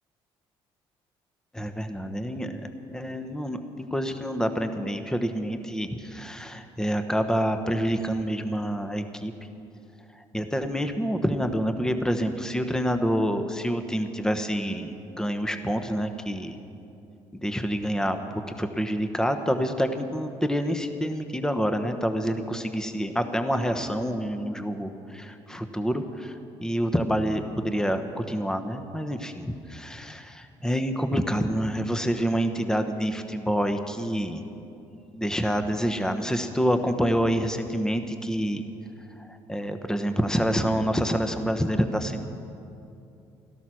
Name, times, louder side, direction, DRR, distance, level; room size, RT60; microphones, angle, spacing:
voice 1, 1.5-2.6 2.9-9.3 10.1-16.5 17.4-18.2 18.6-34.4 35.1-38.7 39.2-42.3, equal, 5° left, 7 dB, 1.1 m, -27 dB
13.5 x 12.5 x 6.3 m, 2.7 s
supercardioid pair, 70°, 11 cm